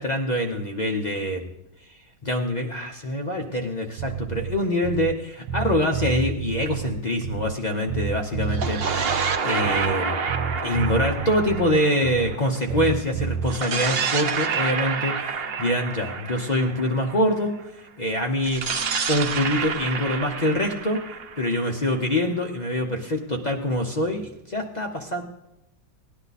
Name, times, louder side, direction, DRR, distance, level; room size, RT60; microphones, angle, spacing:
voice 1, 0.0-1.5 1.9-10.2 10.6-15.1 15.6-17.5 18.0-18.6 19.0-21.0 21.4-25.2, left 1 dB, 50° left, 1 dB, 0.5 m, -25 dB
Bass guitar, 4.0-5.2 5.5-7.6 7.9-10.0 10.3-12.4 12.7-13.6, right 7 dB, 85° right, 1.4 m, -30 dB
sound 1, 8.4-12.8 13.4-17.4 18.4-22.2, right 5 dB, 55° right, 0.6 m, -28 dB
17.0 x 10.5 x 4.1 m, 0.91 s
omnidirectional pair, 2.1 m